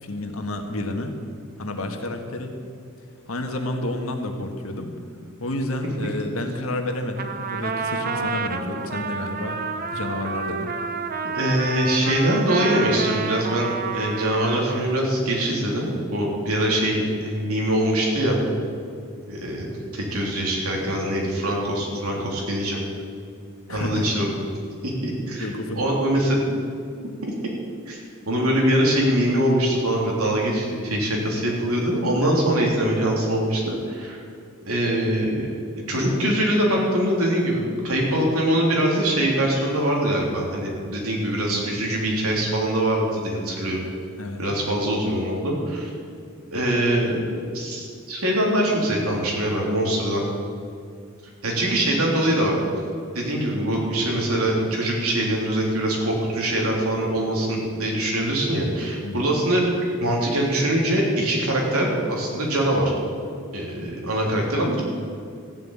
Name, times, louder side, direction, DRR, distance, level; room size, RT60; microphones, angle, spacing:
voice 1, 0.0-1.1 1.6-2.5 3.3-5.0 5.4-9.6 9.9-10.7 23.7-24.0 25.4-25.8 32.2-32.4 44.2-44.4 59.0-59.3, left 1 dB, 75° left, 4 dB, 1.6 m, -30 dB
Trumpet, 7.2-15.0, right 5 dB, 40° right, 0.8 m, -29 dB
voice 2, 11.3-13.7 13.9-18.4 19.3-19.6 19.9-22.8 23.7-24.3 24.8-25.4 25.7-26.5 27.2-27.3 27.9-28.0 28.3-34.2 34.7-35.5 35.9-43.8 44.4-45.9 46.5-50.2 51.4-52.6 53.1-62.9 63.5-64.8, right 1 dB, 90° right, -2 dB, 3.5 m, -23 dB
15.0 x 7.8 x 8.9 m, 2.3 s
head